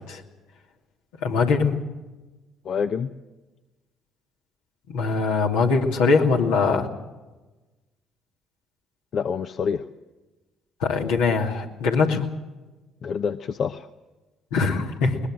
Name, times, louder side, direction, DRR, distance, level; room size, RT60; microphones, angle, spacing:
voice 1, 1.2-1.8 4.9-6.9 10.8-12.3 14.5-15.2, left 4 dB, 80° left, 1 dB, 2.7 m, -22 dB
voice 2, 2.6-3.1 9.1-9.8 13.0-13.9, left 6 dB, 55° left, 9 dB, 0.8 m, -27 dB
21.5 x 20.0 x 7.5 m, 1.1 s
hypercardioid pair, 55°, 0 cm